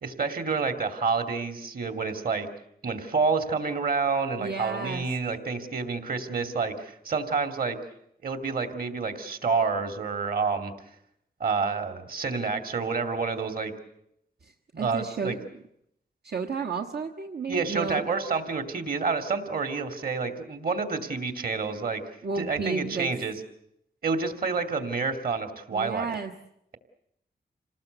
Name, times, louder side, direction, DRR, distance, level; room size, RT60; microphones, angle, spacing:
voice 1, 0.0-2.5 2.8-7.8 8.2-10.7 11.4-13.7 14.7-15.4 17.5-22.0 22.4-23.4 24.0-26.1, right 4 dB, 60° right, 8 dB, 2.6 m, -28 dB
voice 2, 4.4-5.0 14.4-15.5 16.2-18.0 22.2-23.1 25.7-26.3, right 5 dB, 80° right, 2 dB, 1.4 m, -32 dB
27.5 x 19.0 x 8.1 m, 0.77 s
wide cardioid pair, 145°, 17 cm